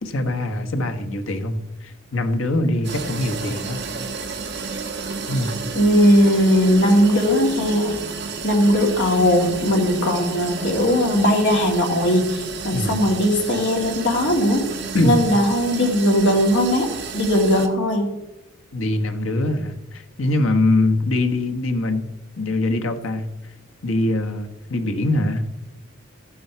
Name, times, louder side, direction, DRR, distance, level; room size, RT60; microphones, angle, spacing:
voice 1, 0.0-3.8 5.3-5.5 12.7-12.9 14.9-15.2 18.7-22.0 22.4-23.3 23.8-25.4, left 2 dB, 80° left, 5 dB, 1.2 m, -23 dB
sound 1, 2.8-17.7, right 4 dB, 60° right, 1.3 m, -31 dB
voice 2, 5.8-8.0 8.4-14.7 15.0-18.1, equal, 60° left, 1 dB, 2.4 m, -18 dB
13.0 x 8.6 x 4.5 m, 0.94 s
head